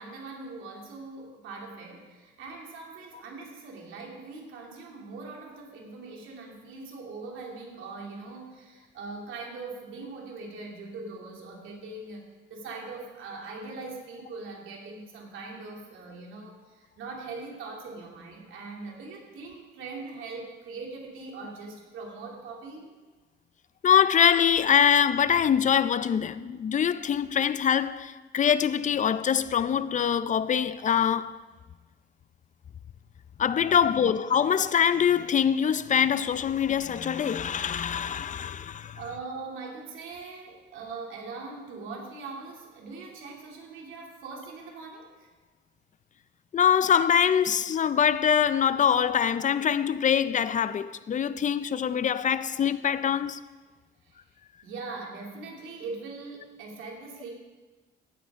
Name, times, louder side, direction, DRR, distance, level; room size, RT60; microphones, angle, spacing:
voice 1, 0.0-22.9 33.8-34.2 38.9-45.3 54.0-54.2 54.6-57.3, right 3 dB, 80° right, 2.7 m, -41 dB
voice 2, 23.8-31.4 33.4-39.0 46.5-53.4, left 8 dB, 40° left, 0.5 m, -24 dB
15.5 x 9.6 x 3.6 m
cardioid pair, 90°, 20 cm